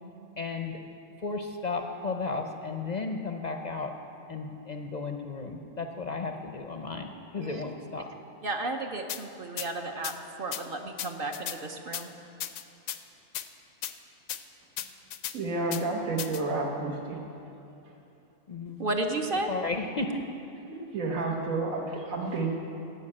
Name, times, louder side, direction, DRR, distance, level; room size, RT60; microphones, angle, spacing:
voice 1, 0.4-0.8 1.2-3.9 4.3-8.1 18.5-18.8 19.5-20.2, left 3 dB, 45° left, 4 dB, 0.6 m, -34 dB
voice 2, 8.4-10.1 10.4-12.1 18.8-19.5, right 2 dB, 50° right, 4 dB, 0.9 m, -33 dB
sound 1, 9.1-9.2 9.6-9.7 10.0-10.1 10.5-10.6 11.0-11.6 11.9-12.0 12.4-13.0 13.3-13.5 13.8-13.9 14.3-14.4 14.8-15.3 15.7-15.8 16.2-16.4, left 11 dB, 85° left, 1.0 m, -35 dB
voice 3, 15.3-17.2 20.9-22.6, right 3 dB, 80° right, 0 dB, 1.8 m, -30 dB
15.0 x 5.7 x 8.7 m, 2.8 s
omnidirectional pair, 1.4 m